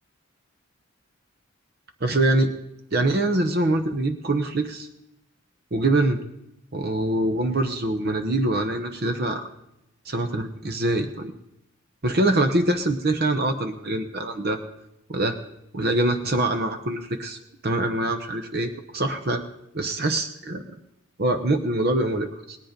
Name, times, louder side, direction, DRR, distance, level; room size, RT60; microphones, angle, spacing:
voice 1, 2.0-2.5 2.9-4.9 5.7-6.2 6.7-9.5 10.1-11.3 12.0-14.6 15.1-15.4 15.7-17.4 17.6-19.4 19.7-20.6 21.2-22.6, right 2 dB, 50° right, 7 dB, 0.9 m, -24 dB
18.0 x 10.5 x 5.2 m, 0.82 s
head